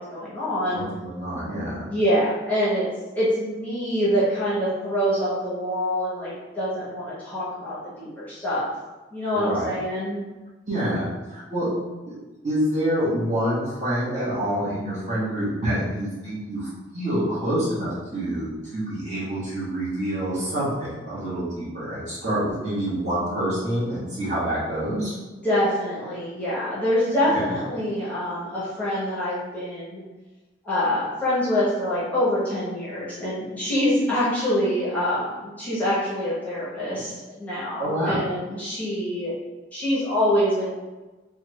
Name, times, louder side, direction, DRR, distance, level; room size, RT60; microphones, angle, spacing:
voice 1, 0.0-0.9 1.9-2.8 3.1-8.7 9.1-10.2 25.3-30.0 30.6-39.3 39.7-40.7, equal, 10° left, -10 dB, 0.8 m, -25 dB
voice 2, 0.7-1.9 9.3-9.7 10.7-11.7 12.1-12.2 12.4-25.1 27.3-27.5 37.8-38.2, right 1 dB, 40° right, -9 dB, 1.1 m, -27 dB
3.3 x 2.2 x 3.1 m, 1.2 s
head